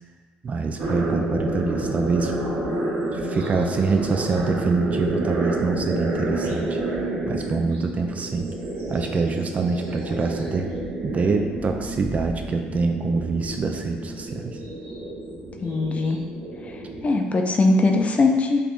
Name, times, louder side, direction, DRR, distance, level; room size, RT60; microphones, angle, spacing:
voice 1, 0.4-2.3 3.1-6.8 7.3-8.5 8.9-10.7 11.0-14.6, right 4 dB, 35° right, 4 dB, 0.3 m, -25 dB
sound 1, 0.8-17.1, right 1 dB, 70° right, 0.8 m, -29 dB
voice 2, 15.6-16.2 16.6-18.6, left 3 dB, 35° left, 3 dB, 0.4 m, -21 dB
3.4 x 2.9 x 2.5 m, 1.4 s
supercardioid pair, 70°, 4 cm